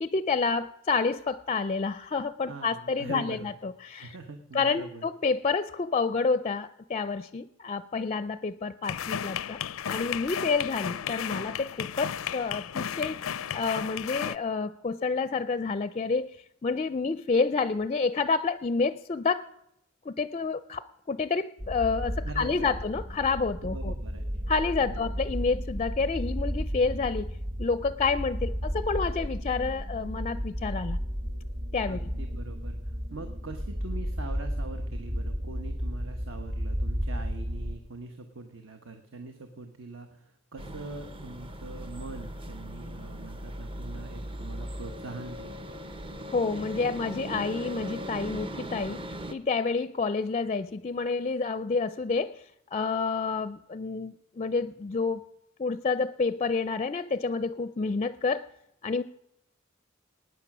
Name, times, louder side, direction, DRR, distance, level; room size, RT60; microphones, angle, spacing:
voice 1, 0.0-4.2 4.5-9.6 9.9-13.2 13.5-16.3 16.6-19.5 20.1-23.9 24.5-27.3 27.6-31.0 31.7-32.0 46.3-49.0 49.3-52.4 52.7-55.3 55.6-58.5 58.8-59.0, left 4 dB, 30° left, 14 dB, 0.4 m, -29 dB
voice 2, 2.5-3.5 4.0-5.0 22.2-22.8 23.6-24.3 24.8-25.1 31.9-45.6, right 3 dB, 65° right, 6 dB, 1.2 m, -43 dB
sound 1, 8.8-14.4, left 8 dB, 90° left, 0.5 m, -34 dB
sound 2, 21.6-37.8, equal, 40° right, 2.0 m, -33 dB
sound 3, 40.6-49.3, equal, 25° right, 0.7 m, -39 dB
19.5 x 9.4 x 6.1 m, 0.81 s
head